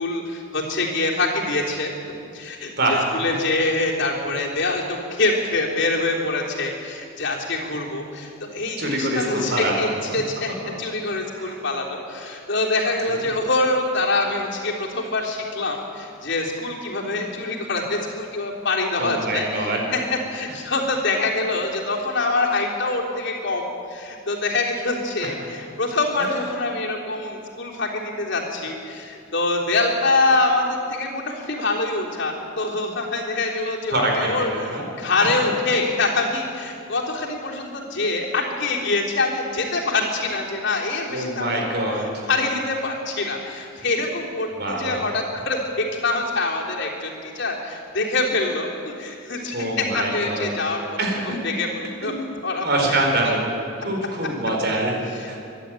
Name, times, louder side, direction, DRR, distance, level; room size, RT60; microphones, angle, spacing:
voice 1, 0.0-1.9 2.3-10.5 10.8-20.0 20.3-41.6 41.9-44.5 44.8-50.8 51.4-53.4 55.1-55.4, left 2 dB, 60° left, -2 dB, 3.5 m, -25 dB
voice 2, 2.8-3.4 8.8-9.9 10.6-10.7 11.4-11.6 19.0-19.8 33.9-34.8 41.1-42.1 44.5-45.0 49.5-50.5 51.0-51.2 52.0-52.3 52.6-53.5 53.8-55.4, right 1 dB, 55° right, 1 dB, 4.4 m, -24 dB
25.0 x 11.5 x 9.1 m, 2.6 s
head